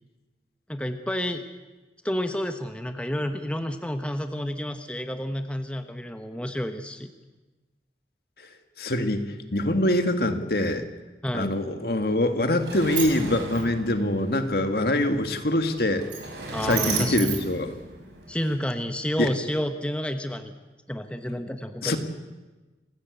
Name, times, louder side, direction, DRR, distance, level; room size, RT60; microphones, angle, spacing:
voice 1, 0.7-1.4 2.0-7.1 11.2-11.5 16.5-17.4 18.3-20.5 20.9-22.0, equal, 5° left, 7 dB, 1.0 m, -30 dB
voice 2, 8.8-9.2 9.5-10.8 11.3-16.0 16.6-17.8 19.2-19.3 21.8-22.0, left 1 dB, 60° left, 7 dB, 2.0 m, -24 dB
Sliding door, 12.0-18.4, right 4 dB, 90° right, 6.0 m, -34 dB
27.0 x 16.0 x 8.2 m, 1.2 s
head